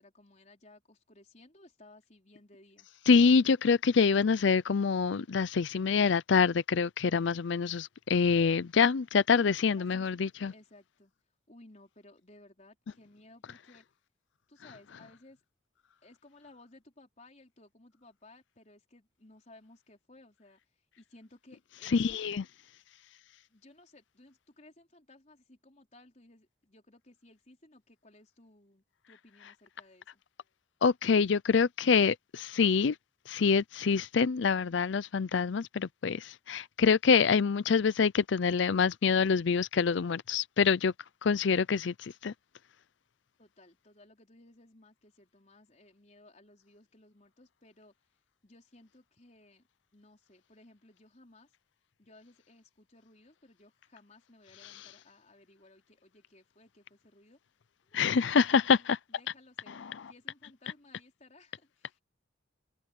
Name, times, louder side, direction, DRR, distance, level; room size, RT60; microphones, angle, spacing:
voice 1, 0.0-2.9 9.8-10.1 10.5-11.1 11.5-13.8 14.5-15.4 16.0-22.3 23.5-30.2 43.4-47.9 48.4-49.7 49.9-51.5 52.0-57.4 57.8-62.0, left 2 dB, 35° left, 4.4 m, -59 dB
voice 2, 3.1-10.5 21.9-22.4 30.8-32.9 33.3-40.9 41.2-42.3 57.9-59.0, left 5 dB, 60° left, 0.5 m, -26 dB
head